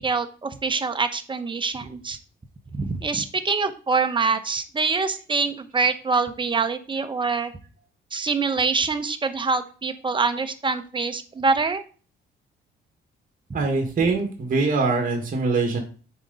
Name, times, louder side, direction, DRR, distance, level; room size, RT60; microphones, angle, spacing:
voice 1, 0.0-2.2 2.8-7.5 8.1-11.8, right 4 dB, 25° right, 8 dB, 0.9 m, -25 dB
voice 2, 13.5-15.8, right 3 dB, 45° right, 2 dB, 1.8 m, -23 dB
8.0 x 4.9 x 4.0 m, 0.39 s
cardioid pair, 90°, 20 cm